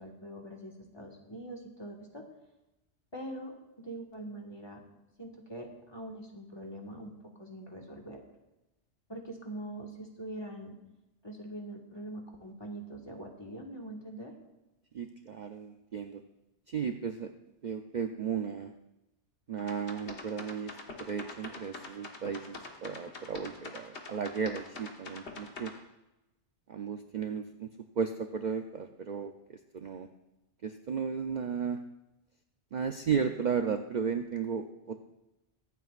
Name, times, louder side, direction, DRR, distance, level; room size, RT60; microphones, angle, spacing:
voice 1, 0.0-2.2 3.1-4.8 5.2-8.2 9.1-10.8 11.2-14.3, right 1 dB, 25° left, 0 dB, 1.6 m, -43 dB
voice 2, 14.9-16.2 16.7-17.3 17.6-18.7 19.5-20.7 21.0-25.7 26.7-27.7 28.0-29.3 29.7-30.1 30.6-31.8 32.7-35.0, right 6 dB, 50° right, 6 dB, 0.6 m, -34 dB
sound 1, 19.6-25.7, left 3 dB, 75° left, 1.8 m, -44 dB
23.5 x 8.4 x 2.5 m, 0.96 s
omnidirectional pair, 1.2 m